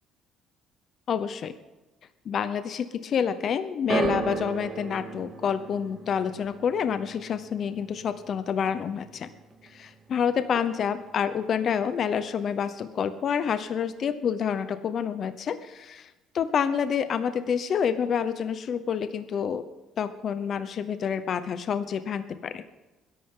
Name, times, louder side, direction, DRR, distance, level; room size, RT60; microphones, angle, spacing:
voice 1, 1.1-1.5 2.3-9.3 9.7-15.8 16.4-19.6 20.0-22.6, left 7 dB, 45° left, 11 dB, 0.8 m, -28 dB
sound 1, 3.9-10.2 10.4-11.1 11.8-11.9, right 5 dB, 25° right, 1.7 m, -36 dB
21.0 x 11.0 x 3.8 m, 1.1 s
cardioid pair, 140°, 0 cm